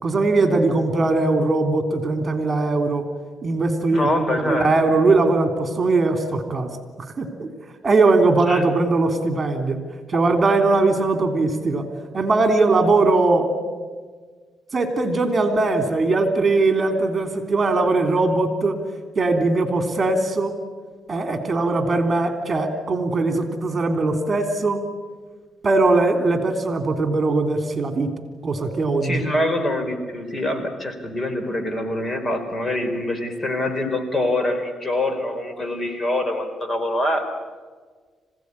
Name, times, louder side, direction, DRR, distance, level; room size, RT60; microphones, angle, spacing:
voice 1, 0.0-3.0 3.4-6.7 7.2-7.5 7.8-9.8 10.1-11.9 12.1-13.5 14.7-18.8 19.2-20.5 21.1-24.8 25.6-28.1 28.4-29.2, right 3 dB, 35° right, 7 dB, 3.4 m, -20 dB
voice 2, 3.9-4.7 8.5-8.6 29.0-37.3, left 1 dB, 30° left, 7 dB, 4.3 m, -25 dB
26.5 x 17.0 x 9.9 m, 1.5 s
cardioid pair, 90°, 0 cm